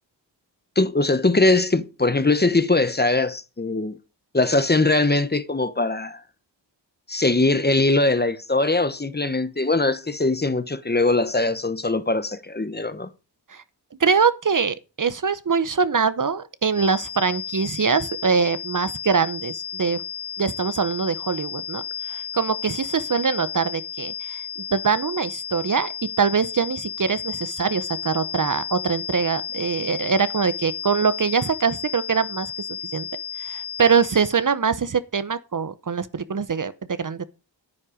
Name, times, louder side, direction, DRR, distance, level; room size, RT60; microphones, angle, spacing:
voice 1, 0.8-4.0 4.3-6.2 7.1-13.1, left 2 dB, 20° left, 1.0 m, -21 dB
voice 2, 14.0-20.0 20.4-24.4 24.7-32.5 32.9-33.1 33.4-37.2, right 5 dB, 45° right, 0.8 m, -23 dB
sound 1, 16.7-34.5, left 8 dB, 75° left, 2.9 m, -33 dB
9.8 x 9.7 x 5.0 m
cardioid pair, 60°, 44 cm